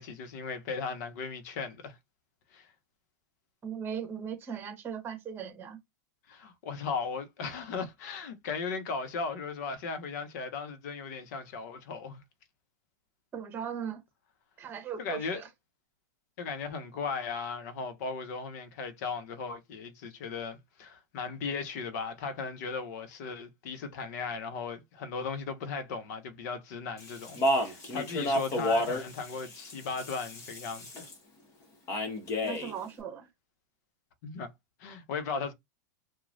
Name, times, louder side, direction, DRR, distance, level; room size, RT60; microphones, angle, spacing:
voice 1, 0.0-1.9 2.5-2.7 6.3-12.2 15.0-15.4 16.4-31.1 34.2-34.5 34.8-35.5, left 5 dB, 60° left, 0.9 m, -37 dB
voice 2, 3.6-5.8 13.3-14.0 14.6-15.5 32.4-33.3, right 7 dB, 20° right, 1.3 m, -38 dB
Speech, 27.0-31.1 31.9-32.7, equal, 30° left, 1.2 m, -31 dB
3.0 x 2.3 x 2.6 m
hypercardioid pair, 130°, 10 cm